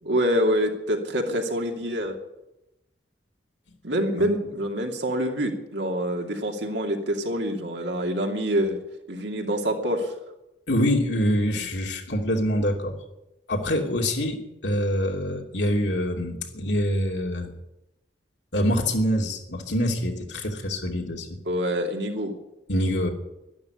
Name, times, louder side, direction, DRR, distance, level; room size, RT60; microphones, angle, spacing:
voice 1, 0.0-2.2 3.8-8.8 9.1-10.1 21.4-22.3, equal, 85° right, 2 dB, 2.8 m, -26 dB
voice 2, 10.7-12.9 13.5-17.5 18.5-21.4 22.7-23.1, equal, 85° left, 2 dB, 3.0 m, -25 dB
12.0 x 12.0 x 9.8 m, 0.92 s
head